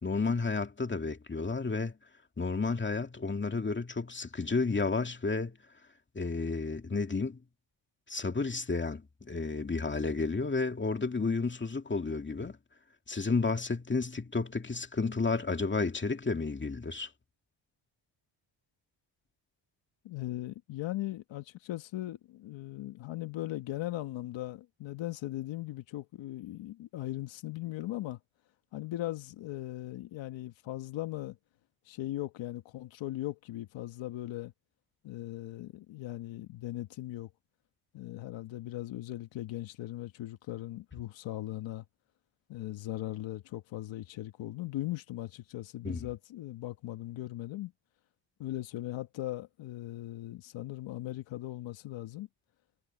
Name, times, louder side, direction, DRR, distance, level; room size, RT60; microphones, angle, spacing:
voice 1, 0.0-2.0 2.4-5.5 6.1-7.4 8.1-12.6 13.1-17.1 45.8-46.1, left 4 dB, 25° left, 2.3 m, -31 dB
voice 2, 20.0-28.2 28.7-31.4 31.8-34.5 35.0-37.3 37.9-41.8 42.5-47.7 48.4-52.3, left 15 dB, 75° left, 1.5 m, -39 dB
supercardioid pair, 65°, 45 cm